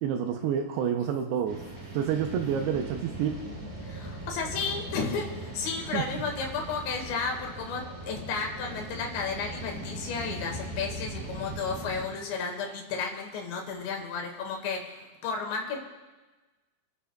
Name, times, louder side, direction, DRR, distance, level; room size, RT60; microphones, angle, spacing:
voice 1, 0.0-1.6 1.9-3.5 5.9-6.0, right 8 dB, 80° right, 4 dB, 2.5 m, -28 dB
sound 1, 1.5-12.0, right 1 dB, 45° right, 5.9 m, -40 dB
voice 2, 3.8-15.8, left 5 dB, 80° left, 1 dB, 4.1 m, -33 dB
28.5 x 11.0 x 2.3 m, 1.2 s
omnidirectional pair, 5.1 m